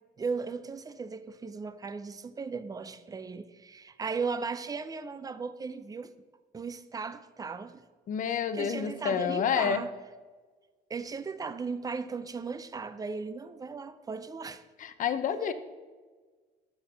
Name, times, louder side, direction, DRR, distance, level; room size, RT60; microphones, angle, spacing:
voice 1, 0.2-6.1 6.5-7.8 8.3-9.9 10.9-14.6, right 5 dB, 20° right, 0.4 m, -37 dB
voice 2, 8.1-9.8 14.8-15.5, left 7 dB, 50° left, 0.6 m, -29 dB
6.4 x 5.8 x 5.9 m
cardioid pair, 110°, 17 cm